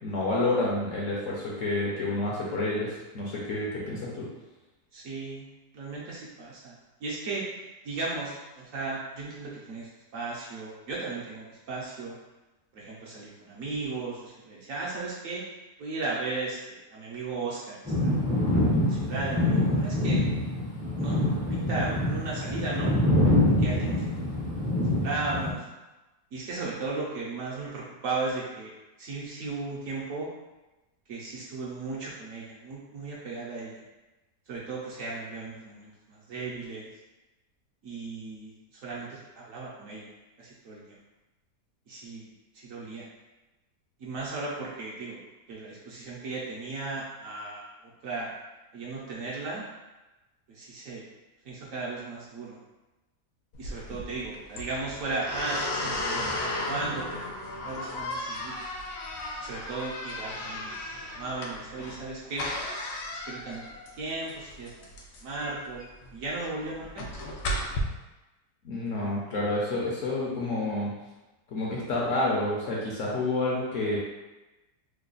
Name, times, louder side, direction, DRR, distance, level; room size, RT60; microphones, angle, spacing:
voice 1, 0.0-4.3 68.6-70.9 71.5-74.0, left 2 dB, 60° left, -5 dB, 0.9 m, -29 dB
voice 2, 4.9-5.5 5.7-7.4 7.8-12.2 12.7-15.4 15.8-17.8 18.0-18.2 18.5-20.2 21.0-22.9 23.6-24.0 24.6-24.7 25.0-25.7 26.3-28.7 29.0-30.3 31.1-33.8 34.5-36.9 37.8-38.5 38.8-40.1 40.4-41.0 41.9-42.3 42.6-43.1 44.0-45.2 45.5-47.6 48.0-48.3 48.7-49.6 50.5-51.0 51.4-52.6 53.6-57.2 57.6-58.6 59.4-60.7 61.0-62.5 63.3-63.6 63.9-64.9 65.2-65.9 66.1-67.1, right 3 dB, 65° right, -5 dB, 0.9 m, -36 dB
sound 1, 17.9-25.5, left 1 dB, 10° right, 0.3 m, -25 dB
sound 2, 53.5-67.8, left 1 dB, 85° left, 0.5 m, -35 dB
3.2 x 2.2 x 3.8 m, 1.1 s
omnidirectional pair, 1.8 m